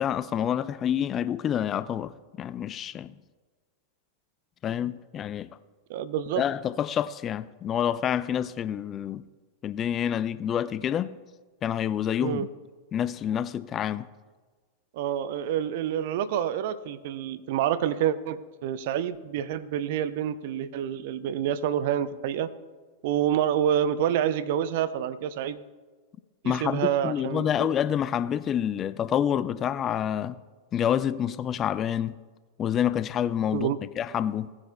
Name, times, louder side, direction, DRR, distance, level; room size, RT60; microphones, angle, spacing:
voice 1, 0.0-3.1 4.6-5.5 6.4-9.2 9.6-11.2 11.6-12.5 12.9-14.1 26.4-30.4 30.7-32.2 32.6-33.7 34.0-34.5, left 9 dB, 30° left, 0.3 m, -28 dB
voice 2, 5.9-6.4 12.2-12.5 14.9-22.5 23.0-25.6 26.4-27.7 33.5-33.8, right 10 dB, 55° right, 0.5 m, -27 dB
17.5 x 9.7 x 2.2 m
figure-of-eight pair, 95°, 0 cm